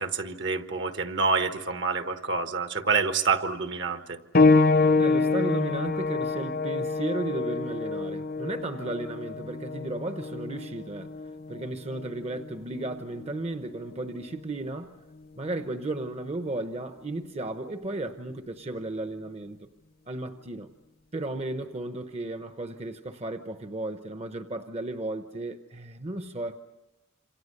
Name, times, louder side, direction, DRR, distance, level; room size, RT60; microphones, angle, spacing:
voice 1, 0.0-4.2, right 4 dB, 60° right, 8 dB, 1.5 m, -27 dB
sound 1, 4.3-14.6 15.5-15.6 16.4-16.5, left 3 dB, 50° left, 0.8 m, -26 dB
voice 2, 5.0-11.1 11.5-15.0 15.4-19.7 20.1-20.7 21.1-26.6, right 2 dB, 35° right, 8 dB, 0.9 m, -34 dB
27.5 x 27.0 x 6.7 m, 1.1 s
head